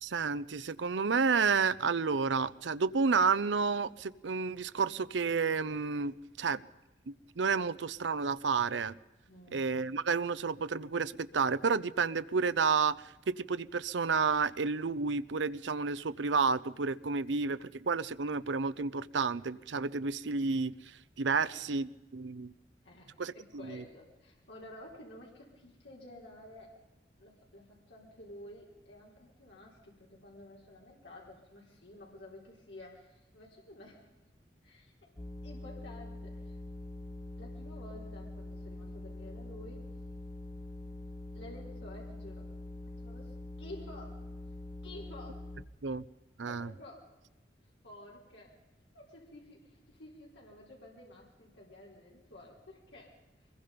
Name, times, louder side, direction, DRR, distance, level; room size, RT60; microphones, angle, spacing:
voice 1, 0.0-6.6 7.1-8.9 9.5-20.7 21.2-22.5 23.2-23.3 23.7-23.8 45.8-46.0 46.4-46.7, right 5 dB, 85° right, 15 dB, 0.6 m, -31 dB
voice 2, 9.3-9.7 21.4-21.6 22.8-26.8 27.2-34.1 34.6-35.1 35.4-36.6 37.4-39.9 41.3-42.5 43.0-44.3 44.8-45.5 46.4-47.1 47.8-48.6 48.9-53.5, left 1 dB, 85° left, -3 dB, 4.3 m, -52 dB
sound 1, 35.2-45.7, left 1 dB, 25° left, 0.9 m, -44 dB
23.5 x 21.5 x 5.2 m, 1.0 s
head